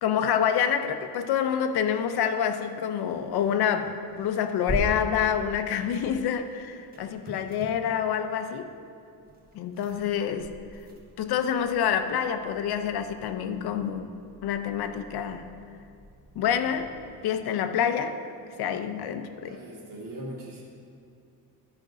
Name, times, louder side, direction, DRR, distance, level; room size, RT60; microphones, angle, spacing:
voice 1, 0.0-8.7 9.5-10.6 11.2-14.1 14.4-15.5 16.4-16.9 17.2-18.2 18.6-19.6, left 8 dB, 80° left, 9 dB, 0.7 m, -27 dB
sound 1, 3.7-17.1, left 1 dB, 25° right, 1.2 m, -42 dB
voice 2, 19.5-20.6, right 1 dB, 55° right, -3 dB, 2.1 m, -40 dB
11.0 x 5.2 x 5.0 m, 2.5 s
cardioid pair, 155°, 38 cm